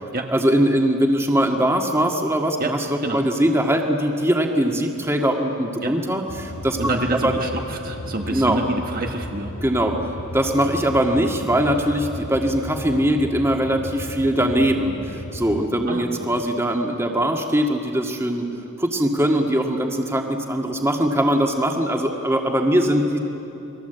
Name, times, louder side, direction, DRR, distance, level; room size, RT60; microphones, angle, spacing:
voice 1, 0.3-2.8 3.1-6.8 7.1-7.3 8.3-8.6 9.6-10.0 10.3-18.5 18.8-23.2, right 1 dB, 10° right, 2 dB, 1.9 m, -21 dB
sound 1, 6.3-15.7, left 1 dB, 75° left, 1.8 m, -35 dB
voice 2, 6.8-9.5 15.9-16.4, right 2 dB, 40° right, 2 dB, 1.4 m, -27 dB
29.5 x 22.0 x 8.1 m, 2.9 s
head